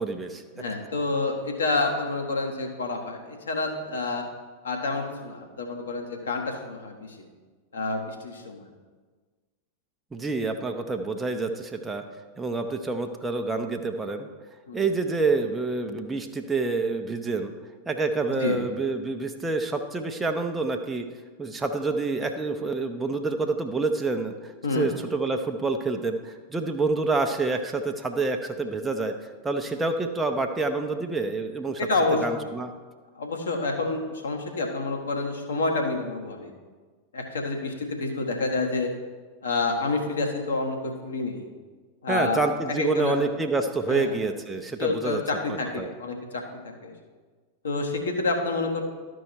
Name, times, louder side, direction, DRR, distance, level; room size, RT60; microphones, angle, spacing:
voice 1, 0.0-0.4 10.1-12.0 12.4-14.3 14.7-17.5 17.9-21.0 21.4-29.1 29.4-31.8 32.2-32.7 42.1-45.2 45.5-45.9, right 3 dB, 10° right, 5 dB, 0.6 m, -27 dB
voice 2, 0.5-4.2 4.6-7.3 7.7-8.7 14.7-14.9 18.4-18.6 24.6-24.9 31.8-32.5 33.1-36.5 37.1-38.9 39.4-41.5 42.0-42.4 42.7-43.3 43.9-44.1 44.8-46.4 46.8-46.9 47.6-48.8, left 3 dB, 70° left, 2 dB, 1.3 m, -28 dB
12.5 x 4.6 x 4.5 m, 1.4 s
figure-of-eight pair, 90°, 0 cm